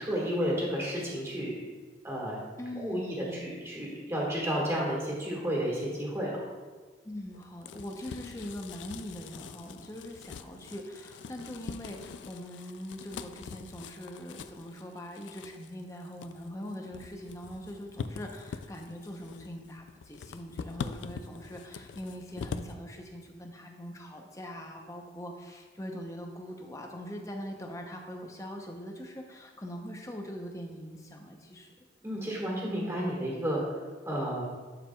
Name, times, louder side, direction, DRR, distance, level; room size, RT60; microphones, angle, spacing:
voice 1, 0.0-1.6 2.0-2.4 2.8-6.5 32.0-34.4, equal, 15° right, -4 dB, 1.6 m, -32 dB
voice 2, 2.6-3.6 7.0-31.7, equal, 15° left, 2 dB, 0.7 m, -42 dB
sound 1, 7.3-22.7, left 5 dB, 80° left, 0.3 m, -43 dB
11.5 x 4.7 x 2.3 m, 1.4 s
head